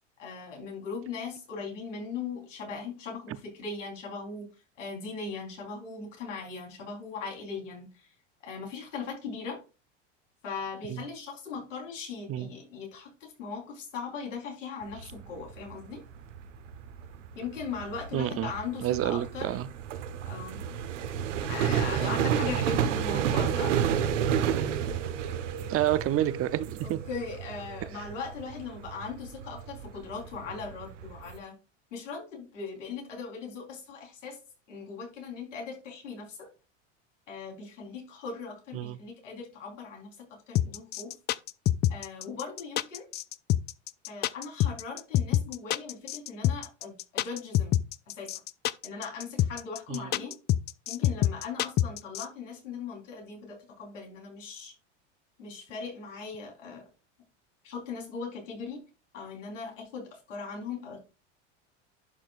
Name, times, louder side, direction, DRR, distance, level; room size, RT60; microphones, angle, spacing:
voice 1, 0.2-4.5 4.8-8.1 8.4-9.6 10.4-16.0 17.4-19.6 20.2-20.6 21.4-23.8 26.8-31.5 31.9-34.4 34.7-36.4 37.3-41.1 41.9-43.1 44.1-47.8 48.1-48.3 48.8-50.3 50.9-54.7 55.4-56.8 57.6-58.8 59.1-61.0, left 5 dB, 90° left, 3.9 m, -39 dB
sound 1, 14.8-31.4, right 8 dB, 85° right, 1.3 m, -32 dB
voice 2, 18.1-18.5 18.8-19.7 22.0-22.2 23.1-23.3 25.7-27.0 38.7-39.0 49.9-50.1, right 13 dB, 40° right, 0.7 m, -29 dB
sound 2, 40.5-52.2, left 12 dB, 30° left, 0.3 m, -26 dB
11.0 x 6.1 x 2.5 m
hypercardioid pair, 100°, 36 cm